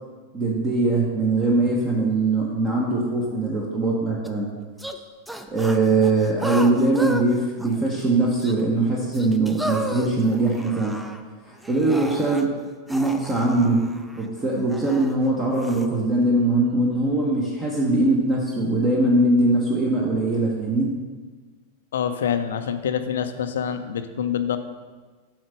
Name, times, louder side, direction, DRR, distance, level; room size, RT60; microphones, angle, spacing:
voice 1, 0.3-4.5 5.5-10.9 11.4-12.5 12.9-13.8 14.2-20.9, right 2 dB, 20° right, -3 dB, 1.1 m, -21 dB
sound 1, 4.2-4.3 4.8-5.0 5.3-7.2 7.6-8.1 8.4-8.5 9.1-11.2 11.6-12.5 12.9-15.1 15.6-15.9, equal, 5° right, 0.5 m, -33 dB
voice 2, 21.9-24.6, left 8 dB, 60° left, 9 dB, 0.5 m, -26 dB
7.7 x 4.3 x 5.2 m, 1.4 s
figure-of-eight pair, 90°, 0 cm